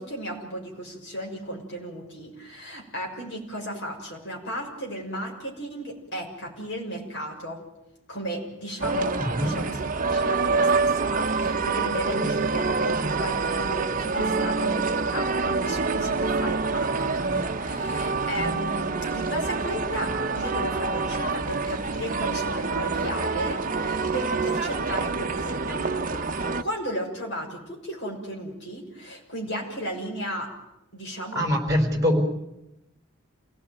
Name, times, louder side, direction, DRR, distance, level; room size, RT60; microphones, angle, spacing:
voice 1, 0.0-7.6 8.1-9.8 10.1-30.5 30.9-31.4, equal, 55° left, 0 dB, 6.4 m, -35 dB
sound 1, 8.8-26.6, right 4 dB, 40° right, 0.9 m, -26 dB
voice 2, 9.2-9.6 31.3-32.2, equal, 15° right, 4 dB, 4.7 m, -23 dB
28.5 x 17.0 x 9.4 m, 0.91 s
head